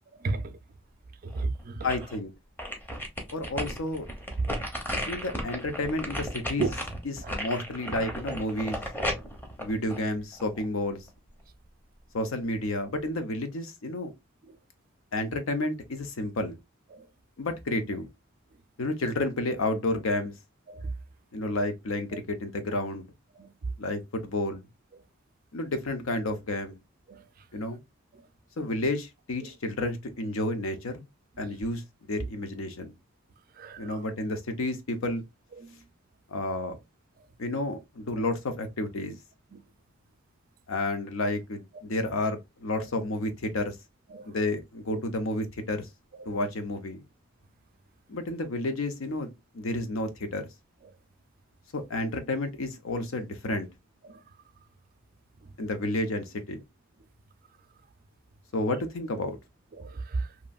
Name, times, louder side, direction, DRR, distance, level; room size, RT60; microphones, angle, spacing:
voice 1, 0.2-0.6 1.2-1.9 4.4-4.5 6.6-6.7 7.2-7.3 16.9-17.0 20.7-20.9 23.4-23.5 27.1-27.2 29.4-29.5 33.6-34.0 35.5-35.7 39.5-39.6 42.7-42.9 44.1-44.3 44.9-45.0 46.2-46.4 54.0-54.2 59.7-60.3, right 3 dB, 45° right, 0.4 m, -33 dB
sound 1, 1.3-2.2 2.6-10.6 11.1-11.2, equal, 10° left, 0.7 m, -34 dB
voice 2, 1.8-2.3 3.3-4.1 5.1-6.7 7.0-8.8 9.6-11.0 12.1-14.1 15.1-16.6 17.4-18.1 18.8-20.3 21.3-23.1 23.8-24.6 25.5-26.8 27.5-27.8 28.6-31.0 31.4-32.9 33.8-35.2 36.3-36.8 37.4-39.2 40.7-43.8 44.2-45.9 46.3-47.0 48.1-49.3 49.5-50.4 51.7-53.7 55.6-56.6 58.5-59.4, left 2 dB, 75° left, 0.6 m, -31 dB
3.0 x 2.5 x 2.2 m
head